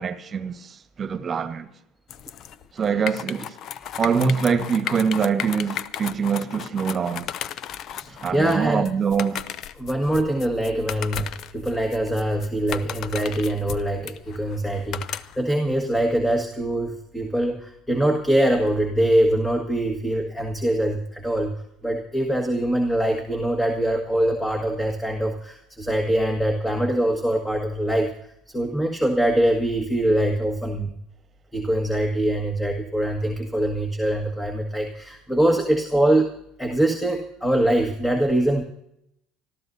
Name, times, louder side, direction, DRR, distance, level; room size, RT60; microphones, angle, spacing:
voice 1, 0.0-1.7 2.7-3.6 4.0-7.3 8.1-9.5, right 6 dB, 35° right, 1.4 m, -24 dB
sound 1, 2.1-15.5, left 10 dB, 55° left, 0.6 m, -35 dB
voice 2, 8.0-8.9 9.8-21.5 21.8-28.1 28.5-30.9 31.5-36.3 36.6-38.6, right 1 dB, 5° left, 1.7 m, -23 dB
26.0 x 14.0 x 2.7 m
hypercardioid pair, 75°, 0 cm